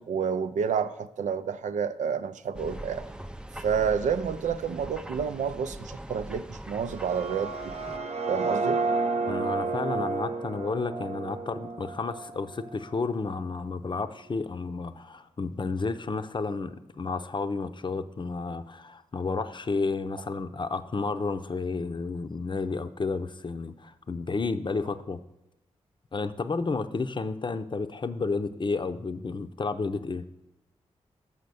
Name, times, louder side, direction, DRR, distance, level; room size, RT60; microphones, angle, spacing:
voice 1, 0.0-3.0 3.6-7.7 8.3-8.8, right 6 dB, 75° right, 11 dB, 0.4 m, -29 dB
sound 1, 2.5-8.0, right 1 dB, 5° right, 0.5 m, -42 dB
sound 2, 6.9-12.8, right 3 dB, 55° right, 0.8 m, -31 dB
voice 2, 9.3-25.2 26.1-30.2, left 4 dB, 40° left, 10 dB, 0.6 m, -31 dB
6.5 x 5.6 x 6.8 m, 0.91 s
supercardioid pair, 40°, 13 cm